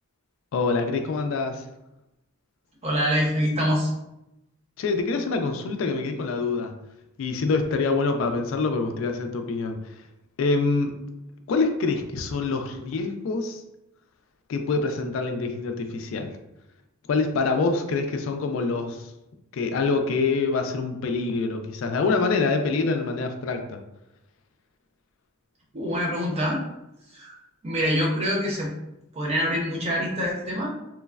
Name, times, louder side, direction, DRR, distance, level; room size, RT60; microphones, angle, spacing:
voice 1, 0.5-1.6 4.8-6.7 7.2-9.8 10.4-10.9 11.5-13.6 14.5-16.4 17.1-19.1 19.5-23.8, left 4 dB, 65° left, 6 dB, 0.3 m, -25 dB
voice 2, 2.8-3.9 25.7-26.6 27.1-27.4 27.6-28.7 29.1-30.7, equal, 30° right, -3 dB, 0.6 m, -25 dB
3.1 x 2.0 x 2.3 m, 0.87 s
head